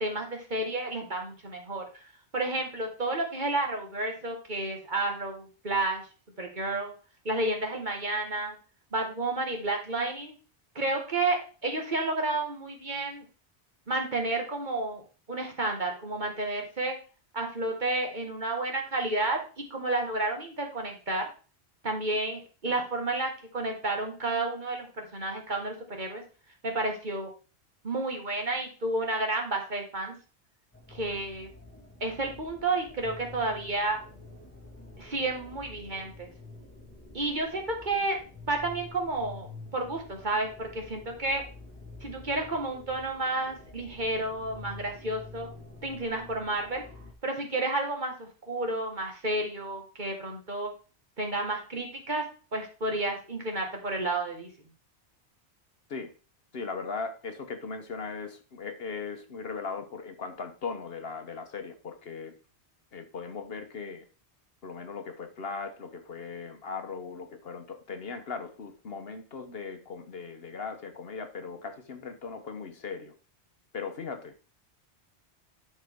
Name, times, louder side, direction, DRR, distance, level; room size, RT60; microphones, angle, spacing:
voice 1, 0.0-2.0 2.3-6.0 6.4-6.9 7.2-8.6 8.9-10.3 10.7-13.2 13.9-15.0 15.3-17.0 17.3-21.3 21.8-26.2 26.6-27.3 27.8-30.1 30.9-31.5 32.0-34.0 35.0-36.3 37.1-38.2 38.5-41.4 42.0-45.5 45.8-46.8 47.2-50.7 51.2-52.2 52.5-54.5, right 2 dB, 45° right, 2 dB, 1.7 m, -31 dB
sound 1, 30.7-47.1, left 2 dB, 10° left, 1.9 m, -48 dB
voice 2, 56.5-62.3 62.9-64.1 64.6-73.1 73.7-74.3, left 5 dB, 60° left, 7 dB, 1.1 m, -38 dB
11.5 x 4.7 x 3.5 m, 0.36 s
omnidirectional pair, 1.1 m